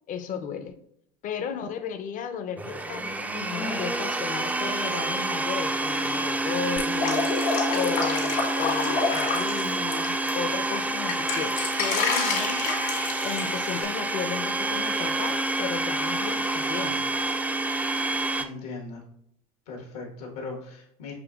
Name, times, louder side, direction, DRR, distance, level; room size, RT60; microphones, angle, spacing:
voice 1, 0.1-0.7 1.2-7.4 7.7-12.8 13.2-17.1, left 7 dB, 45° left, 8 dB, 0.6 m, -34 dB
Domestic sounds home sounds, 2.6-18.5, right 2 dB, 10° right, 0.3 m, -28 dB
Drip, 6.8-10.3 10.7-13.8, left 5 dB, 65° left, 1.4 m, -28 dB
voice 2, 18.4-19.0 19.7-21.1, left 3 dB, 85° left, 0 dB, 1.3 m, -38 dB
6.8 x 2.9 x 2.3 m, 0.71 s
hypercardioid pair, 85°, 19 cm